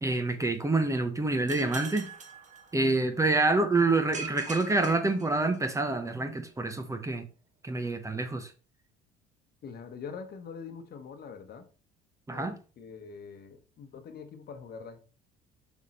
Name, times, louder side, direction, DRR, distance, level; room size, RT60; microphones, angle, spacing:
voice 1, 0.0-2.1 2.7-7.2 7.6-8.5 12.3-12.5, right 2 dB, 15° right, 0.9 m, -27 dB
sound 1, 1.5-3.2 4.1-5.9, right 4 dB, 35° right, 1.5 m, -43 dB
voice 2, 9.6-11.7 12.3-15.0, left 6 dB, 50° left, 1.1 m, -44 dB
6.4 x 3.7 x 4.2 m
supercardioid pair, 85°, 20 cm